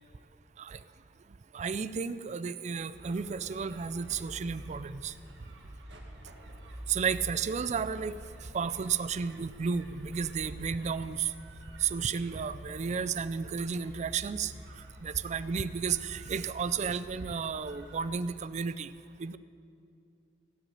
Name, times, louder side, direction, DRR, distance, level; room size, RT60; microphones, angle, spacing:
voice 1, 1.5-5.1 6.9-11.3 11.8-18.9 19.2-19.4, right 6 dB, 40° right, 15 dB, 0.4 m, -33 dB
sound 1, 2.9-18.2, equal, 90° right, 1.8 m, -48 dB
17.0 x 6.1 x 9.0 m, 2.7 s
head